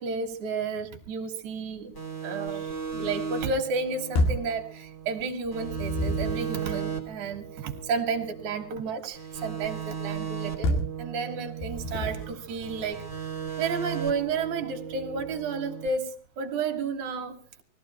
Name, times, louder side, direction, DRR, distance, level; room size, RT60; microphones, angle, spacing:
voice 1, 0.0-1.9 2.2-13.3 13.6-17.4, right 4 dB, 55° right, 4 dB, 2.5 m, -32 dB
sound 1, 1.9-5.2 5.5-8.8 9.1-12.3 12.6-15.9, right 7 dB, 5° left, 1.9 m, -36 dB
sound 2, 4.1-4.5 5.4-6.5 10.6-11.0 11.6-12.3, left 1 dB, 65° left, 3.6 m, -28 dB
19.5 x 15.5 x 4.3 m, 0.40 s
omnidirectional pair, 5.1 m